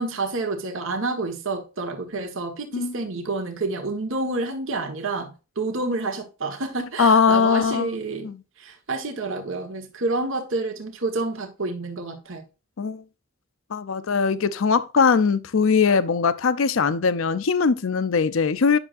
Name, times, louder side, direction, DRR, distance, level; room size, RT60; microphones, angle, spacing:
voice 1, 0.0-8.3 8.6-12.4, right 3 dB, 75° right, 1.4 m, -29 dB
voice 2, 7.0-7.9 8.2-8.3 12.8-13.0 13.7-18.8, left 5 dB, 80° left, 0.5 m, -20 dB
9.7 x 6.3 x 2.5 m
head